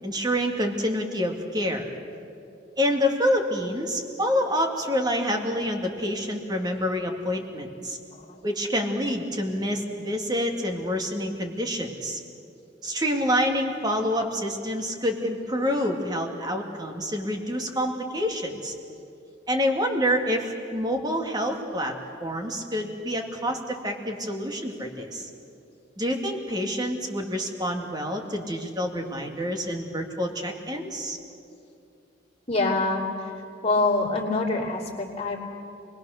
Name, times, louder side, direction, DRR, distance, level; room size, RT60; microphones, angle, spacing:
voice 1, 0.0-1.9 2.8-8.0 8.4-12.2 12.8-18.7 19.5-25.3 26.0-31.2, equal, 25° right, 3 dB, 2.3 m, -27 dB
voice 2, 32.5-33.3 33.6-35.4, left 2 dB, 35° left, -2 dB, 3.0 m, -25 dB
28.5 x 20.5 x 6.6 m, 2.6 s
head